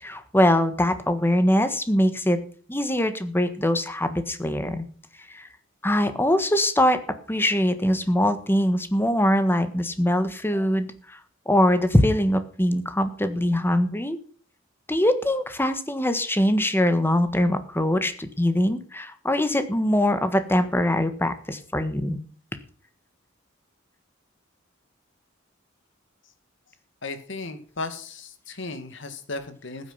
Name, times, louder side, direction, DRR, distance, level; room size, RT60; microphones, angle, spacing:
voice 1, 0.0-2.4 2.7-4.8 5.3-5.5 5.8-7.0 7.3-11.2 11.4-14.2 14.9-22.2, left 1 dB, 10° left, 10 dB, 1.4 m, -22 dB
voice 2, 27.0-29.9, left 3 dB, 65° left, 9 dB, 2.2 m, -35 dB
15.0 x 9.1 x 5.7 m, 0.43 s
head